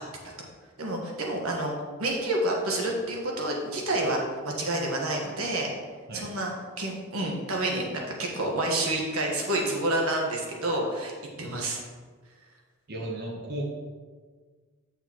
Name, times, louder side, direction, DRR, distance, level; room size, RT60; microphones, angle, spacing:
voice 1, 0.8-1.7 2.0-5.7 6.1-6.5 6.8-11.1 11.4-11.8, right 1 dB, 90° right, -1 dB, 1.4 m, -28 dB
voice 2, 12.9-13.7, right 1 dB, 50° right, -1 dB, 0.9 m, -34 dB
8.4 x 6.6 x 3.0 m, 1.5 s
head